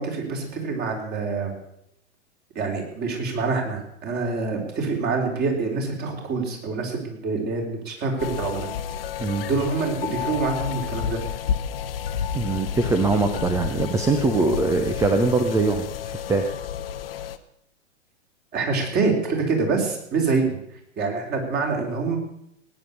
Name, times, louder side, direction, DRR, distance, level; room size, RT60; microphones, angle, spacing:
voice 1, 0.0-1.6 2.6-8.7 9.5-11.2 18.5-20.6 21.0-22.2, right 4 dB, 25° right, 2 dB, 3.9 m, -26 dB
sound 1, 8.2-17.4, left 9 dB, 50° left, 1.1 m, -31 dB
voice 2, 12.3-16.5, right 3 dB, 10° right, 6 dB, 0.8 m, -22 dB
19.0 x 9.4 x 6.7 m, 0.75 s
figure-of-eight pair, 110°, 36 cm